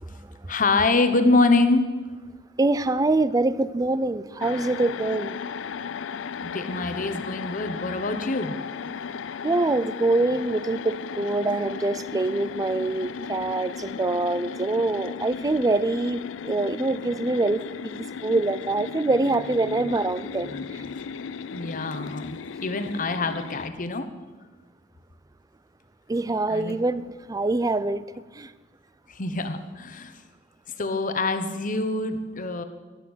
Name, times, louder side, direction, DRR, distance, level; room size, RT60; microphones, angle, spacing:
voice 1, 0.5-1.8 6.4-8.5 21.5-24.1 26.5-26.8 29.1-30.1 30.8-32.6, left 3 dB, 45° left, 1.1 m, -25 dB
voice 2, 2.6-5.3 9.4-16.2 16.4-20.6 26.1-28.0 28.4-28.5, right 2 dB, 20° right, 0.4 m, -24 dB
sound 1, 4.4-23.7, left 6 dB, 80° left, 0.4 m, -36 dB
13.0 x 11.0 x 6.2 m
head